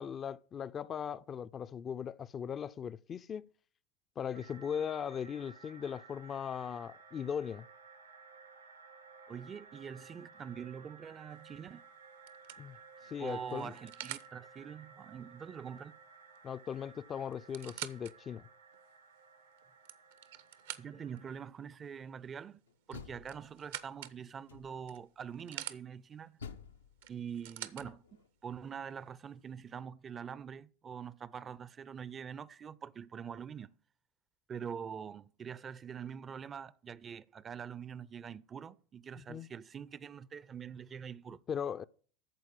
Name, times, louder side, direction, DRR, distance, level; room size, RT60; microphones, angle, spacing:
voice 1, 0.0-3.5 4.2-7.7 12.6-12.8 13.1-13.7 16.4-18.5 39.2-39.5 41.5-41.8, left 8 dB, 35° left, 0.4 m, -39 dB
sound 1, 4.3-21.5, right 5 dB, 85° right, 2.8 m, -57 dB
voice 2, 9.3-11.8 13.2-16.0 20.8-22.6 22.9-26.4 27.1-28.0 28.4-33.7 34.5-41.4, right 7 dB, 30° right, 0.4 m, -44 dB
sound 2, 11.4-11.7 12.3-14.3 16.4-16.5 16.7-16.8 17.3-18.1 18.7-18.8 19.6-21.2 22.9-24.2 24.9-25.8 27.0-27.9 28.8-28.9, right 12 dB, 65° right, 0.7 m, -46 dB
Door, 22.7-23.9 24.5-25.0 26.4-28.3, left 6 dB, 80° left, 0.6 m, -51 dB
13.5 x 4.6 x 7.1 m
figure-of-eight pair, 80°, 0 cm